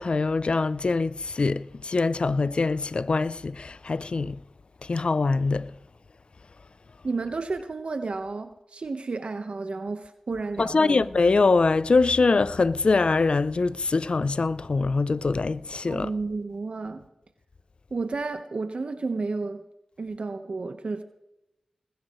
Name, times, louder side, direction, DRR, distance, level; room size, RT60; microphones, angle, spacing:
voice 1, 0.0-4.4 4.8-5.7 10.6-16.1, left 3 dB, 50° left, 0.5 m, -23 dB
voice 2, 7.0-11.0 15.9-17.0 17.9-19.6 20.0-21.0, right 3 dB, 60° right, 1.2 m, -31 dB
20.5 x 16.0 x 3.2 m
cardioid pair, 50°, 2 cm